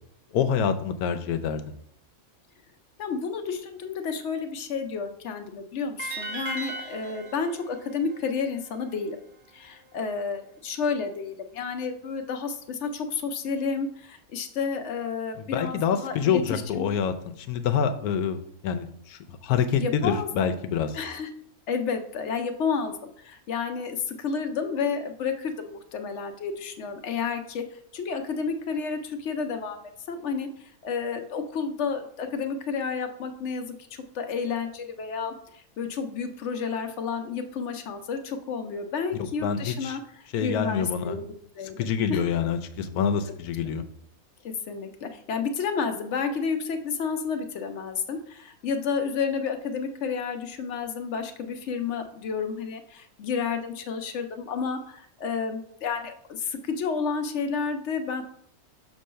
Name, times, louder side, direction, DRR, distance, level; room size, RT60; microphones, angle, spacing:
voice 1, 0.3-1.7 15.4-21.0 39.4-40.0 40.3-41.2 41.8-43.8, left 7 dB, 90° left, 9 dB, 1.1 m, -26 dB
voice 2, 3.0-9.2 9.5-16.9 19.8-20.5 20.9-21.3 21.7-29.8 30.1-42.2 44.4-58.2, left 5 dB, 60° left, 7 dB, 0.9 m, -31 dB
sound 1, 6.0-9.1, right 2 dB, 75° right, 1.2 m, -38 dB
6.4 x 3.0 x 5.5 m, 0.66 s
omnidirectional pair, 1.5 m